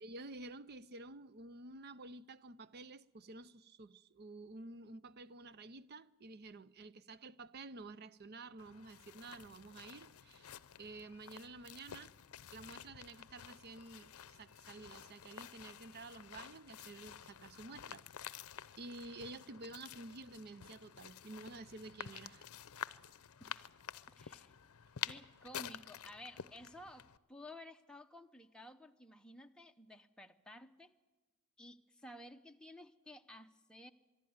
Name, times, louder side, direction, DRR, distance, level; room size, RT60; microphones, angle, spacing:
voice 1, 0.0-12.1 12.5-18.4 18.8-22.5, right 2 dB, 45° right, 0.6 m, -51 dB
sound 1, 8.6-27.2, left 9 dB, 75° left, 0.6 m, -50 dB
voice 2, 23.4-23.7 24.2-24.5 25.0-30.9 31.6-33.9, left 1 dB, 5° left, 0.7 m, -54 dB
24.5 x 12.0 x 9.5 m
head